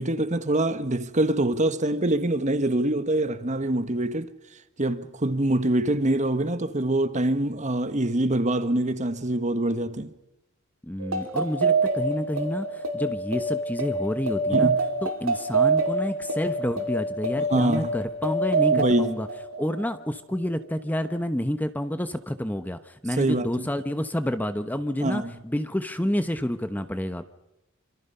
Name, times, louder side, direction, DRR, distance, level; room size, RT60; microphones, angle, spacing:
voice 1, 0.0-4.3 4.8-10.1 14.5-14.8 17.5-17.9 18.7-19.1 23.2-23.7 25.0-25.3, right 1 dB, 35° right, 1.4 m, -24 dB
voice 2, 10.8-14.7 15.0-19.3 19.6-27.2, equal, 10° left, 1.0 m, -29 dB
sound 1, 11.0-20.0, right 3 dB, 65° right, 2.8 m, -26 dB
26.5 x 26.0 x 5.6 m
head